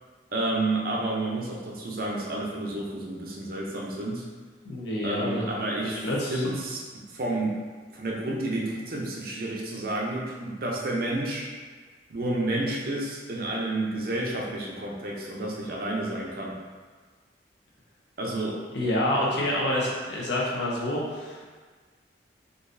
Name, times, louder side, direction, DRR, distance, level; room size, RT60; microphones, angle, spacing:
voice 1, 0.3-4.2 5.0-6.0 6.3-6.8 7.1-7.5 7.9-11.5 12.1-16.6 18.2-18.6, right 2 dB, 50° right, -3 dB, 0.5 m, -30 dB
voice 2, 4.6-5.5 5.8-6.4 18.7-21.4, left 1 dB, 70° left, -4 dB, 0.7 m, -28 dB
3.9 x 2.5 x 2.6 m, 1.5 s
head